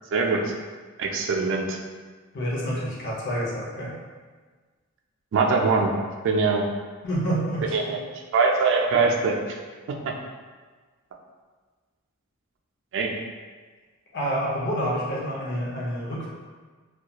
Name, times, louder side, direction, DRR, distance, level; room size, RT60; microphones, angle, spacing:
voice 1, 0.1-0.5 1.0-1.8 5.3-5.9 6.2-6.7 7.7-8.0 8.3-9.6 10.0-10.1 12.9-13.1, right 4 dB, 65° right, 1 dB, 0.3 m, -22 dB
voice 2, 2.3-3.9 7.0-8.0 14.1-16.3, right 1 dB, 60° left, -5 dB, 0.7 m, -28 dB
2.8 x 2.3 x 2.2 m, 1.4 s
head